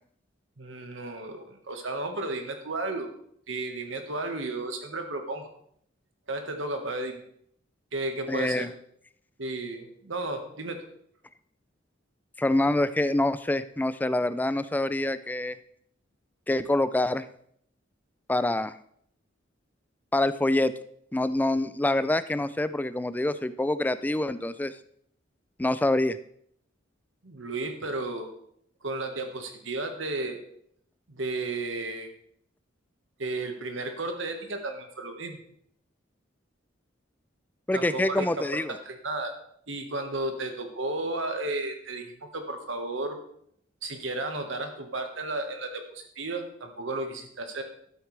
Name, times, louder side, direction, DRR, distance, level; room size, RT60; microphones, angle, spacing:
voice 1, 0.6-3.1 3.5-5.5 6.3-7.2 7.9-8.6 9.4-10.8 27.2-28.3 28.8-30.4 31.1-32.1 33.2-35.4 37.7-38.4 38.8-39.3 39.7-43.2 43.8-47.6, right 2 dB, 75° right, 5 dB, 1.5 m, -33 dB
voice 2, 8.3-8.7 12.4-15.6 16.5-17.3 18.3-18.7 20.1-20.7 21.1-24.8 25.6-26.2 37.7-38.8, left 1 dB, 10° left, 14 dB, 0.3 m, -26 dB
12.5 x 8.1 x 3.3 m, 0.67 s
head